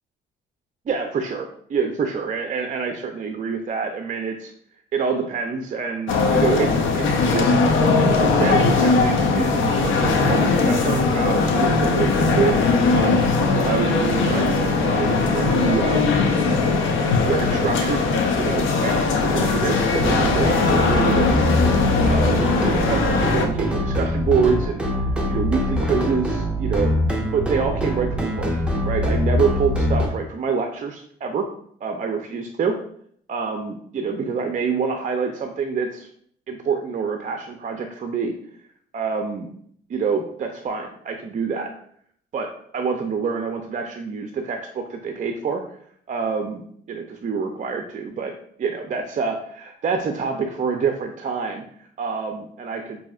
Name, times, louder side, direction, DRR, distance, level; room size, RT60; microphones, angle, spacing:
voice 1, 0.9-4.5 4.9-7.5 8.2-12.5 12.9-14.5 14.8-16.1 17.2-18.0 18.4-21.5 22.1-24.8 25.3-26.9 27.3-28.5 28.8-31.5 31.8-32.8 33.3-36.1 36.5-38.4 38.9-39.5 39.9-41.7 42.3-42.5 42.7-45.6 46.1-48.3 48.6-51.6 52.0-53.0, right 5 dB, 40° right, 4 dB, 0.5 m, -26 dB
sound 1, 6.1-23.5, left 4 dB, 75° left, 0.6 m, -20 dB
sound 2, 20.0-30.1, equal, 5° right, 0.8 m, -23 dB
5.4 x 2.7 x 2.4 m, 0.63 s
cardioid pair, 90°, 20 cm